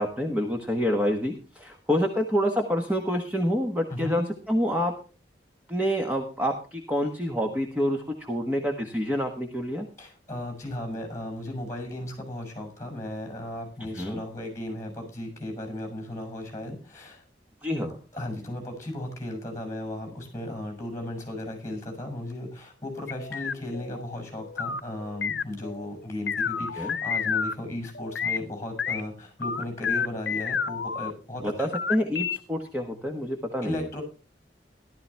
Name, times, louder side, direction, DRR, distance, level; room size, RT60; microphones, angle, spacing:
voice 1, 0.0-4.9 5.7-9.9 13.9-14.2 17.6-18.0 26.8-27.0 31.4-33.9, equal, 10° right, 1 dB, 1.3 m, -27 dB
voice 2, 3.9-4.2 10.0-17.2 18.1-31.7 33.6-34.0, left 1 dB, 20° left, 4 dB, 6.5 m, -35 dB
sound 1, 23.1-27.5 27.9-28.4 28.8-29.0 29.4-31.1 31.5-32.4, left 6 dB, 85° left, 0.8 m, -30 dB
14.5 x 12.5 x 3.4 m, 0.36 s
head